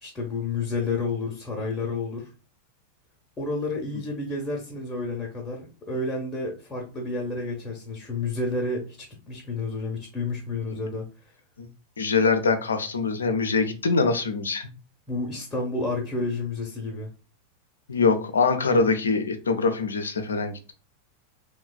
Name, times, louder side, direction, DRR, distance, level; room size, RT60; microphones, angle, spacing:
voice 1, 0.0-2.3 3.4-9.0 9.3-11.1 15.1-17.1, left 3 dB, 15° left, -1 dB, 0.7 m, -30 dB
voice 2, 12.0-14.7 17.9-20.7, left 4 dB, 70° left, 8 dB, 0.4 m, -23 dB
3.1 x 2.1 x 2.3 m, 0.34 s
figure-of-eight pair, 90°, 0 cm